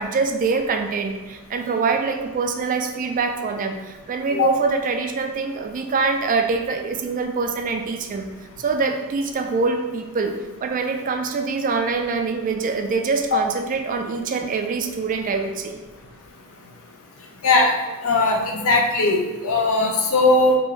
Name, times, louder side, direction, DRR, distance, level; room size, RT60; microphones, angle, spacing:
voice 1, 0.0-8.3 8.6-15.8, right 4 dB, 40° right, 5 dB, 0.3 m, -24 dB
voice 2, 18.0-20.6, left 2 dB, 70° left, 2 dB, 0.6 m, -18 dB
4.5 x 2.6 x 3.2 m, 1.2 s
head